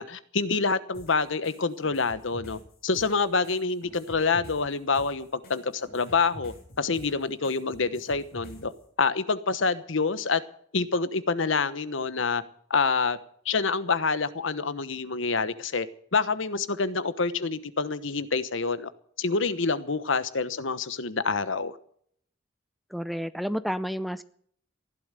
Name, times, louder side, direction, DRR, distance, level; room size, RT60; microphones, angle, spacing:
voice 1, 0.0-8.7 9.0-10.4 10.7-12.4 12.7-13.2 13.4-15.9 16.1-18.9 19.2-21.8, left 4 dB, 70° left, 14 dB, 1.1 m, -27 dB
sound 1, 0.9-8.8, equal, 50° left, 7.7 m, -48 dB
voice 2, 22.9-24.2, equal, ahead, 14 dB, 0.5 m, -30 dB
15.0 x 12.0 x 6.7 m, 0.62 s
head